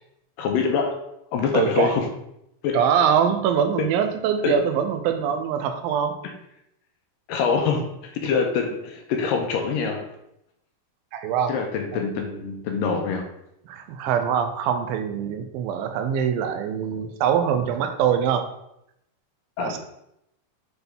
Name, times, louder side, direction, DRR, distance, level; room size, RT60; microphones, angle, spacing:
voice 1, 0.4-1.0 1.3-2.1 2.6-2.8 3.8-3.9 4.4-4.6 7.3-10.0 11.5-13.3 19.6-19.8, left 5 dB, 80° left, 3 dB, 2.3 m, -24 dB
voice 2, 1.5-1.9 2.7-6.1 11.1-11.5 13.7-18.5 19.6-19.8, right 8 dB, 85° right, 7 dB, 2.4 m, -23 dB
8.0 x 3.9 x 3.5 m, 0.80 s
omnidirectional pair, 4.2 m